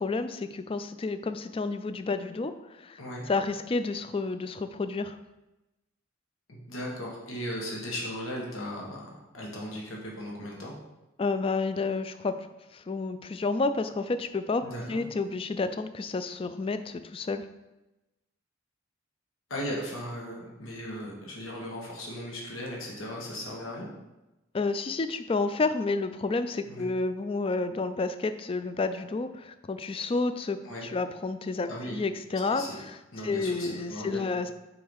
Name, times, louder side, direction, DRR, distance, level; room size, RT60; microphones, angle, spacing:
voice 1, 0.0-2.5 2.8-3.0 3.3-5.2 11.2-12.5 12.7-17.4 24.5-33.0 33.2-34.5, left 3 dB, 25° left, 11 dB, 0.3 m, -30 dB
voice 2, 6.5-10.7 14.6-15.0 19.5-23.9 26.6-26.9 30.6-30.9 31.7-32.0 32.5-32.8 33.1-34.3, equal, 90° left, -3 dB, 1.6 m, -37 dB
4.7 x 4.7 x 5.4 m, 1.0 s
head